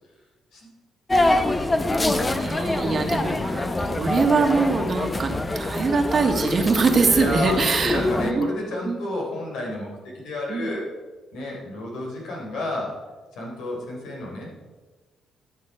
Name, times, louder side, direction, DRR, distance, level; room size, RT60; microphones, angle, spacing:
sound 1, 1.1-8.3, left 2 dB, 20° left, 0.8 m, -25 dB
voice 1, 1.8-3.9 7.1-9.9 10.1-10.9 11.3-12.9 13.3-14.6, left 1 dB, 80° left, -1 dB, 3.5 m, -31 dB
voice 2, 2.4-8.5 8.8-9.0 10.5-10.7, right 4 dB, 45° right, 4 dB, 1.4 m, -23 dB
12.0 x 6.3 x 5.5 m, 1.3 s
cardioid pair, 90°, 0 cm